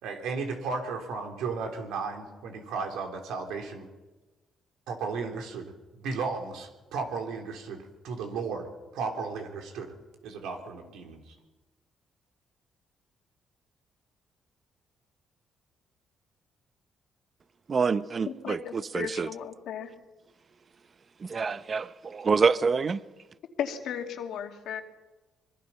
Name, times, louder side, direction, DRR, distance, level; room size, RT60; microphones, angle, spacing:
voice 1, 0.0-3.9 4.9-9.9 10.2-11.3, right 4 dB, 90° right, 3.5 m, -35 dB
voice 2, 17.7-19.3 21.2-23.0, right 5 dB, 40° right, 0.9 m, -26 dB
voice 3, 18.3-19.9 23.6-24.8, left 8 dB, 75° left, 2.5 m, -35 dB
25.0 x 22.0 x 5.8 m
cardioid pair, 90°, 0 cm